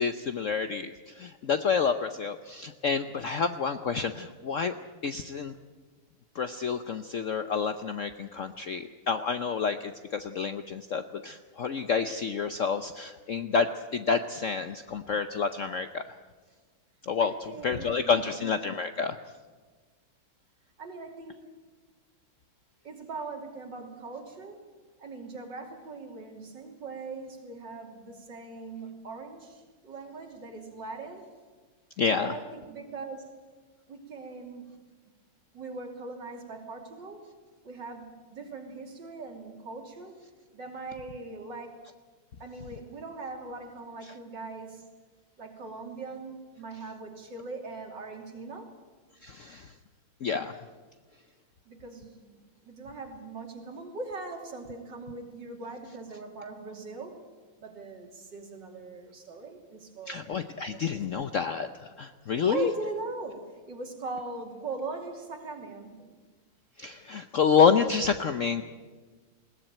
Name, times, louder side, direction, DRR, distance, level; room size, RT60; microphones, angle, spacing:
voice 1, 0.0-4.7 5.0-5.5 6.3-13.7 13.9-16.0 17.0-17.3 17.6-19.2 32.0-32.3 49.2-49.7 50.2-50.5 60.1-62.7 66.8-68.6, left 6 dB, 85° left, 9 dB, 0.6 m, -28 dB
voice 2, 17.2-18.5 20.8-21.4 22.8-24.7 25.0-31.3 32.2-33.3 33.9-34.7 35.5-37.3 37.6-40.2 40.5-41.7 42.4-44.9 45.4-48.7 51.7-57.3 57.6-60.3 60.6-61.1 62.5-66.1, right 3 dB, 55° right, 2 dB, 3.5 m, -40 dB
21.0 x 17.5 x 9.0 m, 1.4 s
omnidirectional pair, 2.4 m